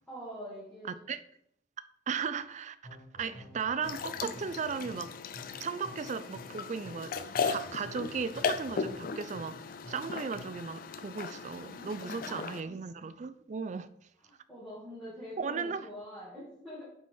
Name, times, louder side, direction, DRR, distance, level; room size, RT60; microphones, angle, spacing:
voice 1, 0.1-0.9 11.7-12.4 14.2-16.9, equal, 5° left, 2.0 m, -45 dB
voice 2, 2.1-2.8 3.1-5.1 5.6-9.6 9.9-13.9 15.4-15.9, right 5 dB, 40° right, 0.4 m, -36 dB
sound 1, 2.8-10.7, left 1 dB, 25° left, 1.6 m, -50 dB
sound 2, 3.8-12.6, left 5 dB, 50° left, 0.4 m, -37 dB
7.8 x 4.4 x 4.7 m
head